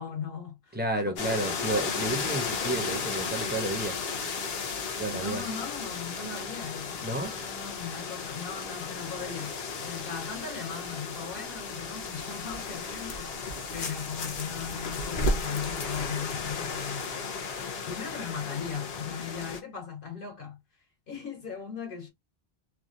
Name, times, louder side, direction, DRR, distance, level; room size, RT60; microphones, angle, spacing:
voice 1, 0.0-0.8 1.0-1.5 5.1-9.5 9.8-17.3 17.8-20.6 21.1-22.1, left 6 dB, 60° left, 1.7 m, -38 dB
voice 2, 0.7-4.0 5.0-5.4 6.2-6.3 7.0-7.4, right 2 dB, 10° right, 0.8 m, -31 dB
sound 1, 1.2-19.6, left 4 dB, 75° left, 1.0 m, -34 dB
3.3 x 2.4 x 2.5 m
omnidirectional pair, 1.0 m